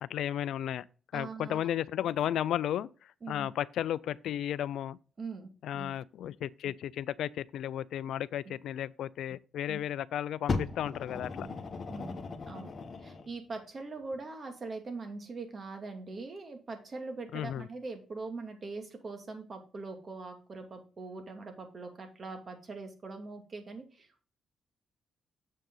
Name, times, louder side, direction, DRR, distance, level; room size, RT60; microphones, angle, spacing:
voice 1, 0.0-0.9 1.1-5.0 5.6-11.5 17.3-17.7, left 11 dB, 80° left, 0.4 m, -34 dB
voice 2, 1.1-1.6 3.2-3.5 5.2-5.9 9.7-9.8 11.4-11.6 11.9-12.8 13.0-24.2, right 3 dB, 40° right, 2.5 m, -42 dB
Fire, 10.5-13.3 14.1-14.2, left 4 dB, 45° left, 1.4 m, -36 dB
7.5 x 6.7 x 3.8 m
cardioid pair, 75°, 0 cm